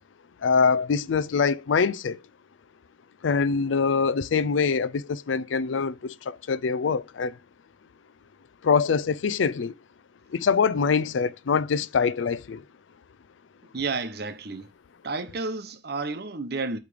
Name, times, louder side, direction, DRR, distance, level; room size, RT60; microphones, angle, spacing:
voice 1, 0.4-2.2 3.2-7.4 8.6-9.7 10.3-12.6, left 5 dB, 90° left, 0.4 m, -24 dB
voice 2, 13.7-14.7 15.0-16.8, right 3 dB, 60° right, 0.9 m, -31 dB
8.6 x 3.3 x 4.9 m
head